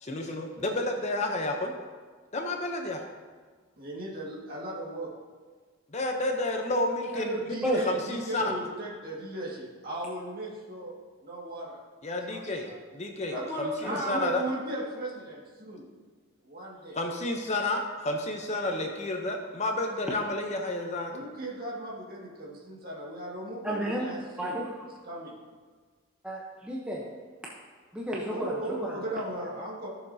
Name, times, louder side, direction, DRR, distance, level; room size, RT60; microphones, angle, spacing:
voice 1, 0.0-1.7 2.3-3.0 5.9-8.6 12.0-14.4 16.9-21.1, left 2 dB, 30° left, 3 dB, 0.7 m, -31 dB
voice 2, 3.8-5.1 7.1-11.0 11.2-11.8 12.3-12.8 13.3-15.9 16.4-17.0 21.1-24.6 25.0-25.4 28.3-29.9, right 1 dB, 45° right, -4 dB, 1.9 m, -36 dB
voice 3, 23.6-24.1 24.4-24.7 26.2-27.1 27.9-29.0, equal, 5° right, -4 dB, 0.8 m, -32 dB
14.5 x 6.9 x 2.8 m, 1.5 s
head